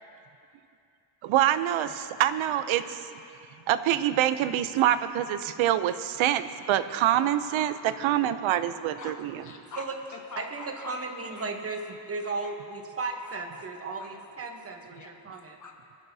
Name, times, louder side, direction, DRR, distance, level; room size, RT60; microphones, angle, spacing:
voice 1, 1.2-3.0 3.7-9.3, right 12 dB, 85° right, 12 dB, 0.6 m, -25 dB
voice 2, 9.0-11.5 12.2-12.6 13.2-13.6 14.0-14.2 14.6-16.1, left 3 dB, 40° left, 2 dB, 1.3 m, -46 dB
voice 3, 10.4-11.8 12.1-15.6, right 3 dB, 30° right, 4 dB, 1.0 m, -35 dB
24.0 x 12.0 x 2.7 m, 2.5 s
wide cardioid pair, 170°, 46 cm